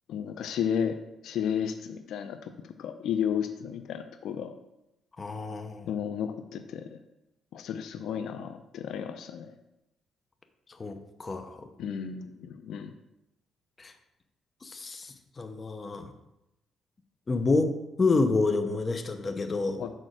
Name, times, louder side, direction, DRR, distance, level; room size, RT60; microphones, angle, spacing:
voice 1, 0.1-1.0 1.2-4.5 5.9-7.0 7.5-9.5 11.8-12.9 19.8-19.9, left 8 dB, 75° left, 8 dB, 0.5 m, -33 dB
voice 2, 5.2-5.9 10.7-11.7 13.8-13.9 14.6-16.1 17.3-17.7 18.0-19.8, left 3 dB, 30° left, 7 dB, 0.8 m, -28 dB
6.5 x 4.4 x 6.3 m, 0.90 s
cardioid pair, 110°, 0 cm